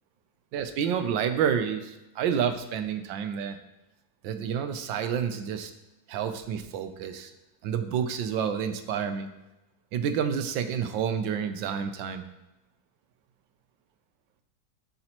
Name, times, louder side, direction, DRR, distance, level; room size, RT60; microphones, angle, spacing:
voice 1, 0.5-3.6 4.2-5.7 6.1-7.3 7.6-9.3 9.9-12.2, right 8 dB, 85° right, 8 dB, 1.4 m, -29 dB
13.0 x 5.4 x 3.0 m, 0.98 s
omnidirectional pair, 2.0 m